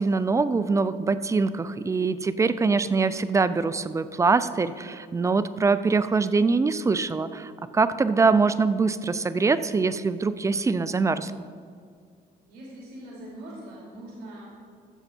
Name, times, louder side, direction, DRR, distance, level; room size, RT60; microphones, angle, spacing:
voice 1, 0.0-11.3, right 4 dB, 20° right, 14 dB, 0.4 m, -23 dB
voice 2, 12.4-14.5, right 1 dB, 70° right, -5 dB, 2.8 m, -42 dB
14.5 x 7.0 x 4.4 m, 2.2 s
cardioid pair, 110°, 17 cm